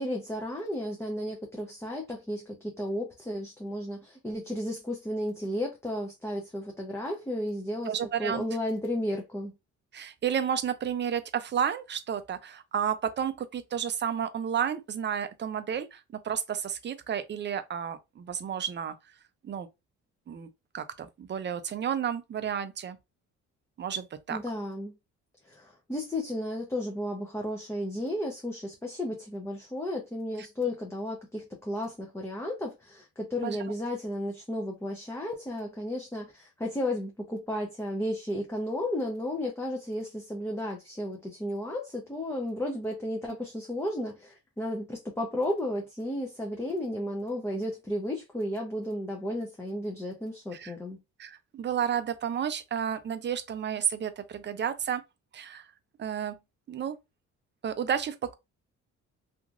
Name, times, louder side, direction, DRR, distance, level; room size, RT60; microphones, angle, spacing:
voice 1, 0.0-7.9 8.2-9.5 24.3-24.9 25.4-51.0, left 1 dB, 10° left, 0.7 m, -33 dB
voice 2, 7.9-8.4 9.9-18.9 19.4-19.7 20.3-20.5 20.7-23.0 23.8-24.4 33.4-33.6 50.5-50.7 51.2-55.0 55.3-55.7 56.0-56.4 56.7-57.0 57.6-58.3, right 8 dB, 40° right, 0.5 m, -31 dB
2.9 x 2.5 x 2.4 m
cardioid pair, 90°, 30 cm